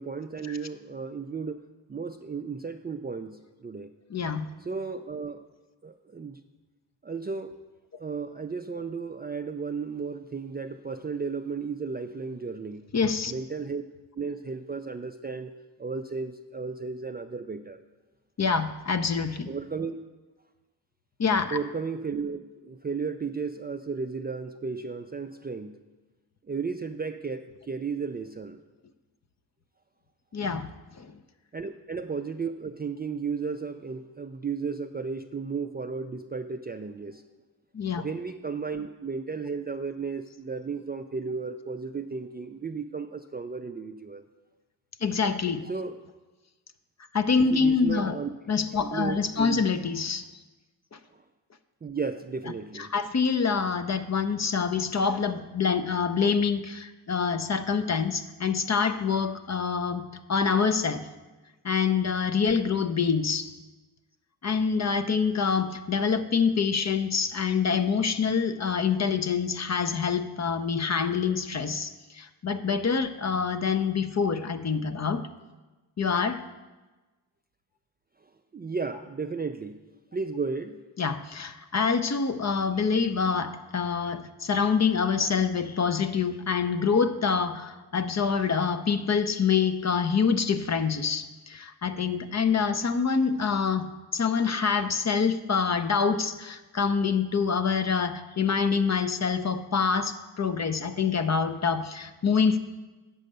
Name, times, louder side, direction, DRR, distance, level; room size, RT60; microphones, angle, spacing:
voice 1, 0.0-1.6 1.9-3.9 4.6-5.5 5.8-6.4 7.0-7.6 8.0-12.9 13.2-13.8 14.2-15.5 15.8-17.8 19.5-20.0 21.5-25.8 26.5-28.6 31.5-37.2 38.0-44.2 45.6-46.0 47.4-48.3 48.7-49.6 51.8-52.9 78.5-79.8 80.1-80.8, right 5 dB, 25° right, 6 dB, 0.4 m, -34 dB
voice 2, 4.1-4.5 12.9-13.3 18.4-19.5 21.2-21.6 30.3-30.7 31.0-31.2 37.7-38.0 45.0-45.7 47.1-48.2 48.5-50.3 50.9-51.0 52.7-61.1 61.6-63.5 64.4-75.3 76.0-76.4 81.0-102.6, left 5 dB, 35° left, 9 dB, 0.6 m, -26 dB
7.7 x 5.2 x 6.6 m, 1.2 s
cardioid pair, 50°, 45 cm